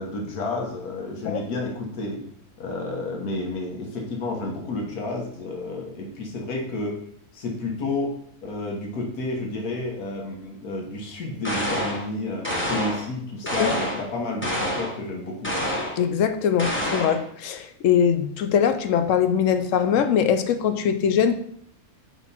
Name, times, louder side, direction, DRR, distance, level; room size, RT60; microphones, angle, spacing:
voice 1, 0.0-2.2 2.6-7.0 7.3-8.1 8.4-15.5, left 2 dB, 85° left, 0 dB, 1.6 m, -31 dB
sound 1, 11.4-12.1 12.4-13.1 13.5-14.1 14.4-15.0 15.4-16.0 16.6-17.2, equal, 10° left, 0.8 m, -27 dB
voice 2, 16.0-21.3, left 8 dB, 65° left, 9 dB, 0.8 m, -22 dB
5.7 x 4.4 x 4.2 m, 0.66 s
omnidirectional pair, 1.6 m